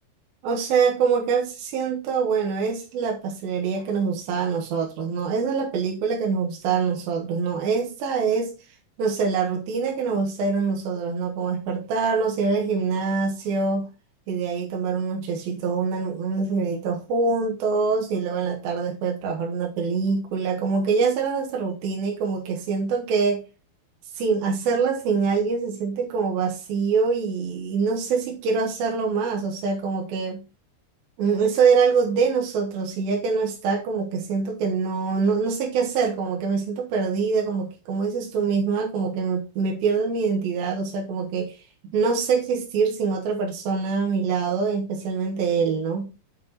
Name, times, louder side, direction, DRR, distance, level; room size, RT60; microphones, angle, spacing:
voice 1, 0.4-8.5 9.0-13.9 14.3-23.4 24.1-30.4 31.2-41.6 41.9-46.1, right 5 dB, 70° right, 3.0 m, -24 dB
8.4 x 4.7 x 4.1 m
omnidirectional pair, 4.6 m